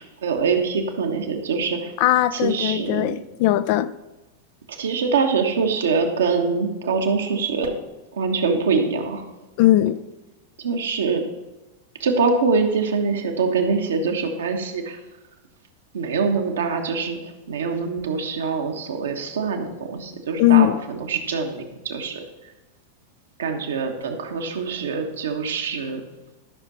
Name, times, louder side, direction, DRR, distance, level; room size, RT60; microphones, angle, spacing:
voice 1, 0.0-1.9 2.3-3.2 4.7-7.8 8.1-9.3 10.6-11.2 12.0-15.0 15.9-22.5 23.4-26.0, right 4 dB, 65° right, 4 dB, 1.2 m, -24 dB
voice 2, 2.0-3.9 9.6-10.0 20.4-20.8, left 14 dB, 45° left, 14 dB, 0.4 m, -18 dB
12.5 x 6.2 x 4.0 m, 1.1 s
figure-of-eight pair, 90°, 0 cm